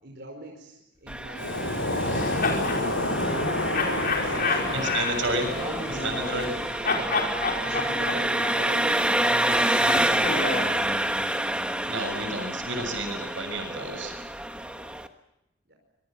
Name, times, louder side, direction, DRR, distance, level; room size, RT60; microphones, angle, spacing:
voice 1, 0.0-2.6 3.1-3.3 4.2-4.9 5.5-6.5 6.9-7.1 7.6-10.7 15.7-15.8, right 1 dB, 60° right, 1 dB, 5.0 m, -41 dB
Engine, 1.1-15.1, right 1 dB, 5° right, 1.3 m, -28 dB
Waves surf, 1.4-6.8, left 1 dB, 80° left, 6.6 m, -29 dB
sound 1, 2.0-2.8 3.7-6.6 6.8-10.8, left 4 dB, 55° left, 4.9 m, -30 dB
voice 2, 4.7-5.5 5.9-6.5 11.9-14.1, right 2 dB, 80° right, 6 dB, 6.8 m, -31 dB
25.0 x 23.0 x 7.5 m, 0.86 s
head